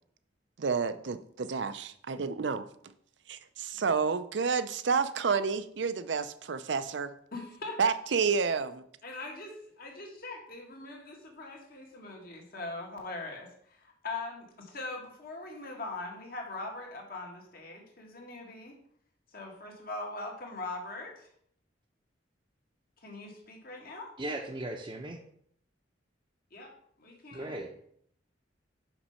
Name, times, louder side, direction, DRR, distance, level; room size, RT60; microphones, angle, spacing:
voice 1, 0.6-2.7 3.3-7.1 7.8-8.7, right 5 dB, 70° right, 13 dB, 0.5 m, -30 dB
voice 2, 7.3-7.8 9.0-18.7 19.3-21.3 23.0-24.1 26.5-26.7 27.0-27.6, left 2 dB, 55° left, 1 dB, 1.8 m, -41 dB
voice 3, 24.2-25.2 27.3-27.7, right 1 dB, 25° right, -1 dB, 0.7 m, -37 dB
5.9 x 5.4 x 5.5 m, 0.67 s
head